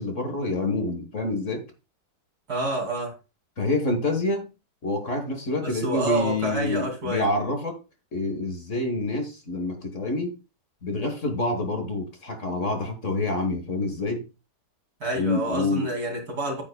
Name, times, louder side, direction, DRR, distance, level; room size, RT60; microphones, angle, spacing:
voice 1, 0.0-1.7 3.6-4.5 4.8-7.8 8.1-10.3 10.8-14.3 15.1-15.9, left 2 dB, 45° left, 1.7 m, -27 dB
voice 2, 2.5-3.1 5.6-7.3 15.0-16.6, right 2 dB, 65° right, 3.2 m, -28 dB
9.3 x 8.9 x 2.3 m
omnidirectional pair, 1.8 m